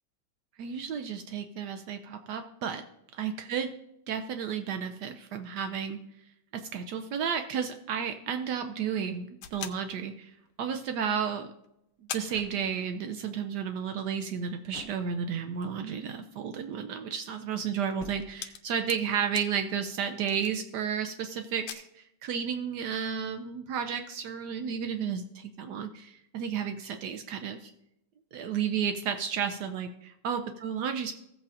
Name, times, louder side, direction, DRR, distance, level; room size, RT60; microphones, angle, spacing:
voice 1, 0.6-2.8 3.2-3.7 4.1-6.0 6.5-10.3 10.6-11.5 12.1-27.7 28.3-31.1, right 7 dB, 80° right, 6 dB, 0.9 m, -32 dB
sound 1, 9.4-10.8 11.3-11.4 11.6-11.7 12.1-13.3 13.6-13.7 14.3-21.1 21.4-21.7, left 9 dB, 80° left, 1.5 m, -45 dB
sound 2, 11.9-13.1 14.7-15.6 18.0-18.9, equal, 5° left, 1.9 m, -51 dB
16.0 x 8.1 x 2.5 m, 0.82 s
omnidirectional pair, 2.4 m